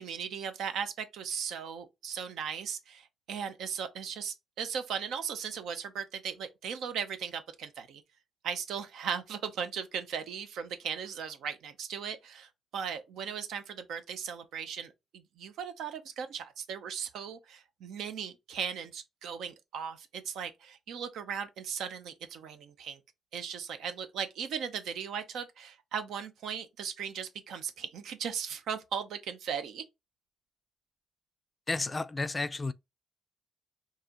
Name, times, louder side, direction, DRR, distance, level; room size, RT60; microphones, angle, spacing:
voice 1, 0.0-8.0 8.4-23.0 23.3-29.8, right 7 dB, 80° right, 0.7 m, -37 dB
voice 2, 31.7-32.7, left 3 dB, 25° left, 0.3 m, -32 dB
4.7 x 2.8 x 2.9 m
cardioid pair, 90°, 0 cm